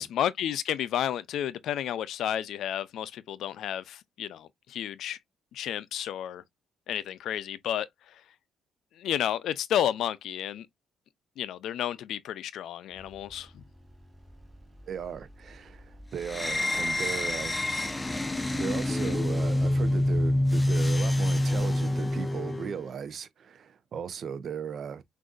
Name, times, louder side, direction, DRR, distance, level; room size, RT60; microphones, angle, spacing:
voice 1, 0.0-5.2 5.5-6.4 6.9-7.9 9.0-10.7 11.4-13.6, left 10 dB, 75° left, 0.5 m, -31 dB
sound 1, 12.9-21.0, equal, 15° right, 1.6 m, -52 dB
voice 2, 14.9-17.6 18.5-25.0, right 7 dB, 55° right, 0.6 m, -37 dB
sound 2, 16.2-22.8, left 1 dB, 15° left, 0.6 m, -27 dB
6.2 x 2.6 x 2.4 m
cardioid pair, 90°, 0 cm